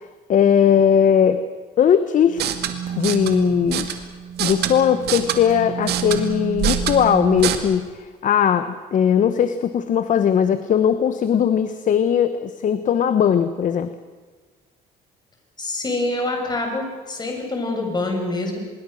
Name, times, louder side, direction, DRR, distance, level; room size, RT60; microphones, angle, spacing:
voice 1, 0.3-1.4 1.8-2.4 3.0-3.9 4.4-13.9, left 8 dB, 50° left, 11 dB, 1.2 m, -19 dB
sound 1, 2.3-7.6, right 8 dB, 75° right, 2.2 m, -25 dB
voice 2, 15.6-18.6, left 2 dB, 25° left, 2 dB, 6.7 m, -25 dB
25.5 x 22.0 x 6.6 m, 1.4 s
cardioid pair, 110°, 17 cm